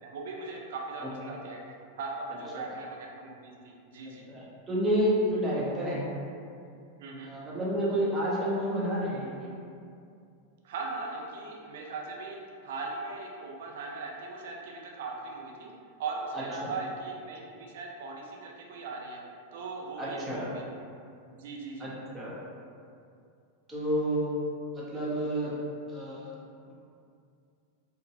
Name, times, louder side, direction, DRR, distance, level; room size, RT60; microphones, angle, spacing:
voice 1, 0.0-1.6 2.0-4.3 7.0-7.3 10.6-15.7 16.0-19.2 19.5-20.6 21.3-21.9, right 3 dB, 55° right, -2 dB, 0.4 m, -39 dB
voice 2, 1.0-1.4 4.3-6.1 7.2-9.5 16.6-16.7 20.0-20.5 21.8-21.9 22.1-22.3 23.7-24.3 24.7-25.5 25.9-26.3 26.7-26.8, equal, 15° right, -7 dB, 0.8 m, -30 dB
3.8 x 2.1 x 2.4 m, 2.4 s
figure-of-eight pair, 90°, 0 cm